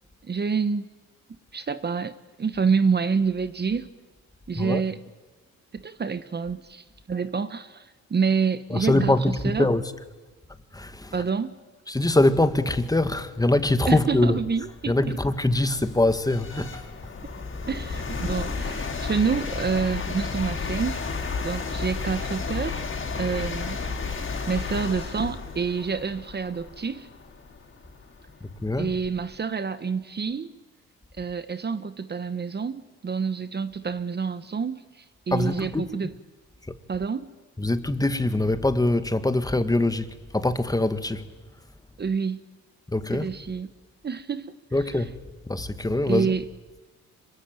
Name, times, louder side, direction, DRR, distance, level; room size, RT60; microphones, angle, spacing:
voice 1, 0.2-0.9 1.3-3.9 4.5-5.0 5.7-9.7 11.1-11.6 13.9-15.2 16.6-16.7 17.7-21.1 21.4-22.8 23.2-23.8 24.5-27.1 28.8-30.5 31.2-36.1 36.9-37.3 42.0-42.5 43.1-43.7 44.0-44.6 44.9-45.0 46.1-46.5, right 5 dB, 35° right, 1.2 m, -28 dB
voice 2, 8.7-9.8 10.7-11.1 11.9-14.4 14.9-16.8 28.6-28.9 35.3-35.9 37.6-41.3 42.9-43.3 44.7-45.1 45.5-46.4, left 2 dB, 10° left, 1.8 m, -23 dB
sound 1, 13.9-14.0 14.6-29.3, left 4 dB, 40° left, 5.4 m, -33 dB
26.0 x 23.5 x 9.1 m
cardioid pair, 90°, 30 cm